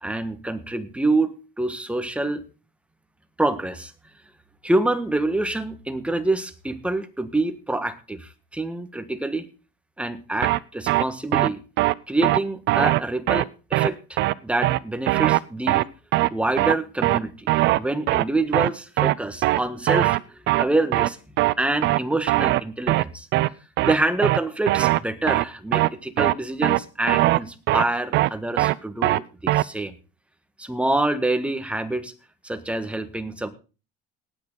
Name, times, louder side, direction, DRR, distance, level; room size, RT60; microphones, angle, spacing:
voice 1, 0.0-2.4 3.4-3.9 4.6-9.5 10.0-11.6 12.1-15.9 16.3-21.2 21.6-23.3 23.8-29.9 30.6-32.1 32.4-33.5, right 2 dB, 5° right, 9 dB, 1.5 m, -26 dB
sound 1, 10.4-10.6 10.9-11.0 11.3-11.5 11.8-11.9 12.2-12.4 12.7-13.0 13.3-13.4 13.7-13.9 14.2-14.3 14.6-14.8 15.1-15.4 15.7-15.8 16.1-16.3 16.6-16.7 17.0-17.2 17.5-17.8 18.1-18.2 18.5-18.7 19.0-19.1 19.4-19.6 19.9-20.2 20.5-20.6 20.9-21.1 21.4-21.5 21.8-22.0 22.3-22.6 22.9-23.0 23.3-23.5 23.8-23.9 24.2-24.4 24.7-25.0 25.3-25.4 25.7-25.9 26.2-26.3 26.6-26.8 27.1-27.4 27.7-27.8 28.1-28.3 28.6-28.7 29.0-29.2 29.5-29.6, right 17 dB, 60° right, 0.6 m, -20 dB
18.0 x 8.8 x 4.0 m, 0.33 s
supercardioid pair, 105°, 20 cm